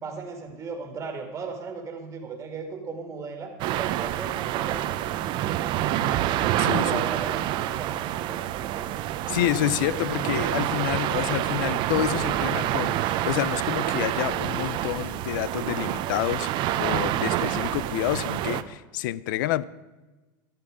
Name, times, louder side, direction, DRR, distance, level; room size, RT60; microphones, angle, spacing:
voice 1, 0.0-5.3 6.6-9.1, right 4 dB, 20° right, 2.0 m, -37 dB
sound 1, 3.6-18.6, right 13 dB, 45° right, 0.7 m, -27 dB
voice 2, 6.6-7.0 9.3-16.5 16.8-19.6, left 14 dB, 70° left, 0.6 m, -28 dB
13.0 x 12.5 x 4.9 m
supercardioid pair, 130°, 11 cm